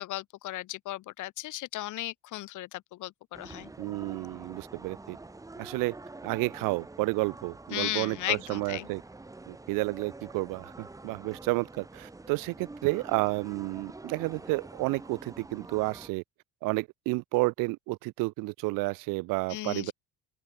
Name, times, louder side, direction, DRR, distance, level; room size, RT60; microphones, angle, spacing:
voice 1, 0.0-3.7 7.7-8.9 19.5-19.9, left 16 dB, 55° left, 2.5 m, -35 dB
sound 1, 3.3-16.1, right 2 dB, 10° right, 3.4 m, -46 dB
voice 2, 3.8-5.2 5.6-6.0 6.2-9.0 9.5-16.2 16.6-19.9, right 24 dB, 65° right, 0.5 m, -31 dB
open air
cardioid pair, 155°, 36 cm